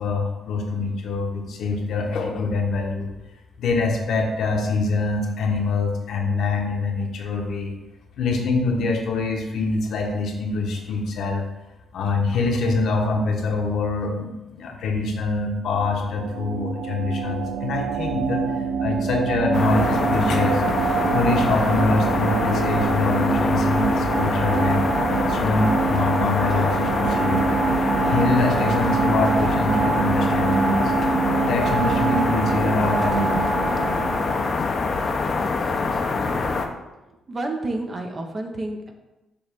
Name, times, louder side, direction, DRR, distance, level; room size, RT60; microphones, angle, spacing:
voice 1, 0.0-3.1 3.6-7.7 8.2-11.4 11.9-18.4 18.8-20.6 21.1-30.9 31.4-33.3, left 3 dB, 70° left, 1 dB, 1.1 m, -24 dB
sound 1, 15.7-34.6, right 6 dB, 80° right, 0.4 m, -25 dB
sound 2, 19.5-36.7, left 4 dB, 40° left, 0.7 m, -25 dB
voice 2, 37.3-38.9, right 2 dB, 30° right, 3 dB, 0.9 m, -30 dB
6.9 x 3.2 x 5.2 m, 1.0 s
cardioid pair, 110°, 0 cm